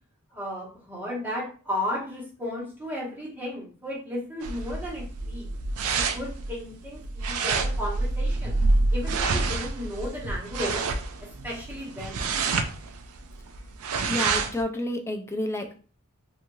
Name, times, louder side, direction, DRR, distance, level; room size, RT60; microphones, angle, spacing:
voice 1, 0.3-5.5 5.9-8.6 8.9-10.9 11.2-12.3, left 1 dB, 10° right, -5 dB, 1.1 m, -34 dB
sound 1, 4.4-14.6, right 3 dB, 70° right, 0.4 m, -27 dB
voice 2, 14.1-15.8, left 1 dB, 10° left, 4 dB, 0.3 m, -30 dB
3.0 x 2.5 x 2.6 m, 0.39 s
head